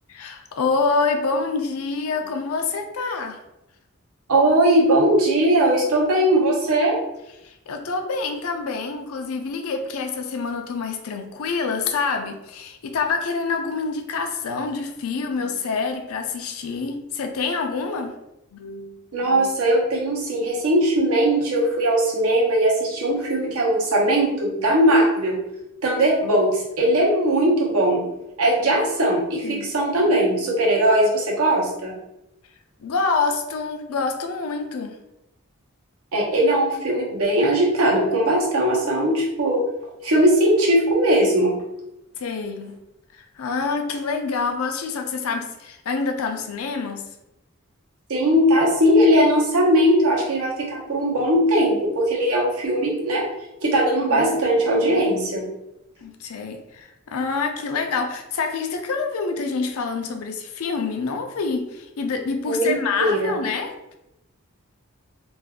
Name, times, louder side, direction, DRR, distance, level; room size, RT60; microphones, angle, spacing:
voice 1, 0.1-3.4 7.4-18.1 18.5-19.0 29.4-29.7 32.8-35.0 42.2-42.8 43.1-47.1 54.1-54.4 56.0-63.9, left 4 dB, 80° left, 5 dB, 0.4 m, -27 dB
voice 2, 4.3-7.0 19.1-25.4 25.8-28.0 28.4-31.9 36.1-39.6 40.0-41.6 48.1-53.3 53.6-55.4 62.4-63.3, right 1 dB, 90° right, -3 dB, 0.9 m, -19 dB
2.6 x 2.2 x 3.5 m, 0.89 s
head